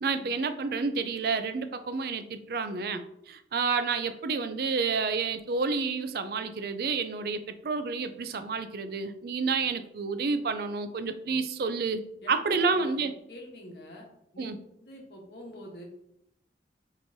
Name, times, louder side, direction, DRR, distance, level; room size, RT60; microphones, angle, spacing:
voice 1, 0.0-12.0 12.3-13.1 14.4-14.6, right 4 dB, 55° right, 9 dB, 0.4 m, -29 dB
voice 2, 12.2-14.0 14.3-14.5 14.8-15.8, left 1 dB, 70° left, 0 dB, 1.1 m, -46 dB
5.1 x 3.1 x 2.6 m, 0.77 s
head